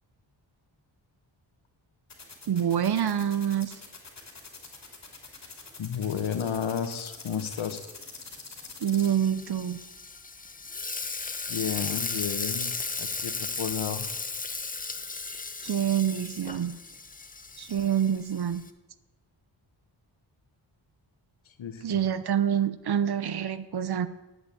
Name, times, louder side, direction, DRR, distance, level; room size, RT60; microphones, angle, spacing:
sound 1, 2.1-9.1, left 4 dB, 35° left, 2.9 m, -44 dB
voice 1, 2.5-3.8 8.8-9.8 15.6-16.7 17.6-18.7 21.8-24.1, right 9 dB, 55° right, 14 dB, 0.8 m, -26 dB
voice 2, 5.8-7.8 11.5-12.7 13.0-14.1 21.6-22.0, left 7 dB, 80° left, 8 dB, 1.4 m, -32 dB
Frying (food), 9.0-18.7, left 4 dB, 20° left, 0.7 m, -35 dB
11.0 x 8.3 x 8.4 m, 1.1 s
wide cardioid pair, 135°, 46 cm